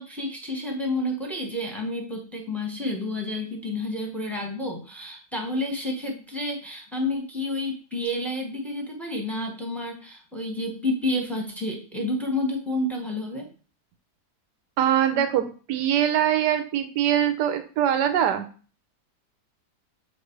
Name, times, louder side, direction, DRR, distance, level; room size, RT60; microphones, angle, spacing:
voice 1, 0.0-13.5, left 1 dB, ahead, 1 dB, 1.1 m, -30 dB
voice 2, 14.8-18.4, right 10 dB, 85° right, 8 dB, 1.3 m, -23 dB
7.1 x 3.2 x 4.6 m, 0.39 s
omnidirectional pair, 1.8 m